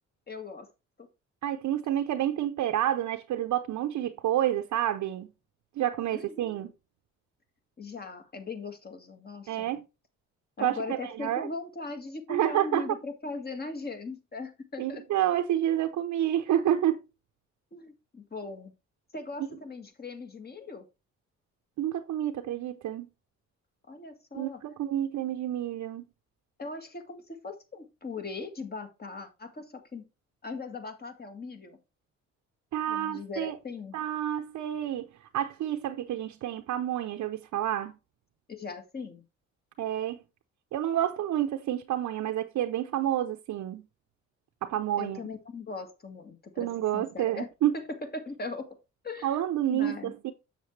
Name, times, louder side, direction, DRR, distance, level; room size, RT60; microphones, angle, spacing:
voice 1, 0.3-0.7 1.0-1.1 6.1-6.7 7.8-9.7 10.6-15.0 17.7-18.7 19.1-20.8 23.9-24.6 26.6-30.0 30.4-31.8 32.9-34.0 38.5-39.2 45.0-47.5 47.7-48.8 49.0-49.4 49.7-50.1, left 3 dB, 30° left, 1.9 m, -39 dB
voice 2, 1.4-5.3 5.8-6.7 9.5-9.8 10.6-11.4 12.3-12.9 14.8-17.0 21.8-23.1 24.3-26.0 32.7-33.6 33.9-35.1 35.3-37.9 39.8-40.2 40.7-43.8 44.6-45.2 46.6-47.7 49.2-50.3, right 12 dB, 70° right, 0.7 m, -29 dB
7.3 x 7.2 x 3.2 m
cardioid pair, 90°, 30 cm